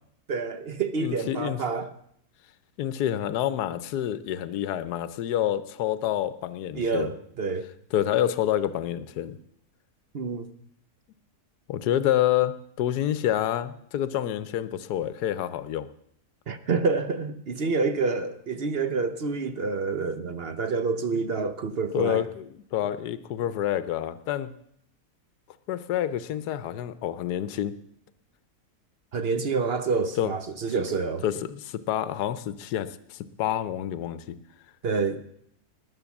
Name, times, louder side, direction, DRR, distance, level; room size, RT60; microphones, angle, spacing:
voice 1, 0.3-1.9 6.8-7.7 10.1-10.5 16.5-22.2 29.1-31.2 34.8-35.2, right 4 dB, 45° right, 0.9 m, -28 dB
voice 2, 1.0-1.6 2.8-7.1 7.9-9.4 11.7-15.9 21.9-24.5 25.7-27.8 30.2-30.3 31.2-34.4, left 11 dB, 80° left, 1.3 m, -28 dB
20.0 x 7.6 x 7.1 m
omnidirectional pair, 1.7 m